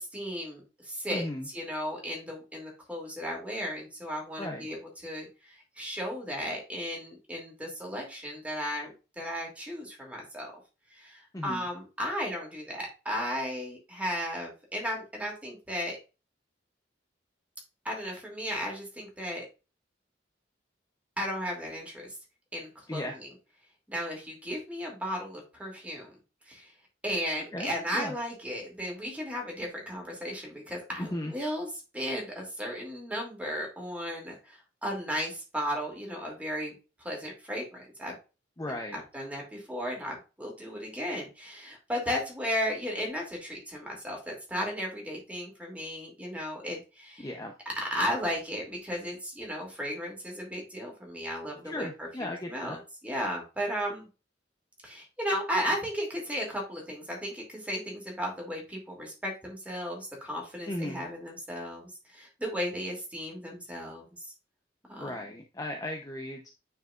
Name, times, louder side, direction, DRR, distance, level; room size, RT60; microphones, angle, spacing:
voice 1, 0.0-4.8 5.0-10.5 10.9-16.0 17.8-19.4 21.2-22.2 22.5-23.3 23.9-26.1 26.5-26.7 27.0-31.7 31.9-38.2 38.7-47.3 47.8-54.1 54.8-64.3 64.9-65.1, equal, 10° right, -1 dB, 2.6 m, -35 dB
voice 2, 1.1-1.5 4.4-4.7 11.3-11.7 22.9-23.2 27.5-28.1 31.0-31.3 38.6-39.0 47.2-47.5 51.6-52.8 60.7-61.1 65.0-66.5, left 1 dB, 20° left, 2 dB, 0.7 m, -36 dB
9.2 x 4.7 x 2.4 m, 0.30 s
head